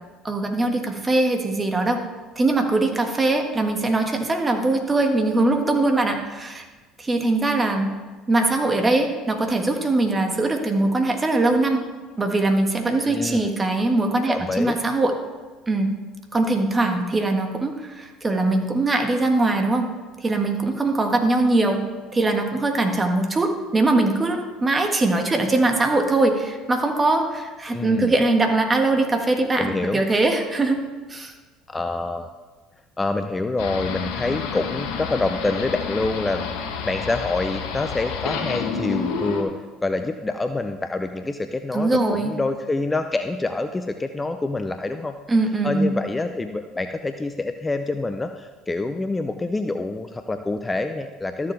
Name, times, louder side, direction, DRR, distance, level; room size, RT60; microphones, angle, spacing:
voice 1, 0.2-2.0 2.3-6.6 7.0-8.0 8.3-11.9 12.2-15.1 15.7-16.0 16.3-19.9 20.2-31.3 41.7-42.4 45.3-46.0, right 2 dB, 25° right, 4 dB, 1.6 m, -21 dB
voice 2, 13.0-13.5 14.3-14.8 27.7-28.1 29.6-30.0 31.7-32.3 33.0-39.6 39.8-45.2 45.6-51.5, left 2 dB, 20° left, 7 dB, 0.5 m, -26 dB
sound 1, 33.6-39.4, left 6 dB, 70° left, 1.1 m, -29 dB
13.0 x 7.1 x 3.3 m, 1.3 s
hypercardioid pair, 65°, 0 cm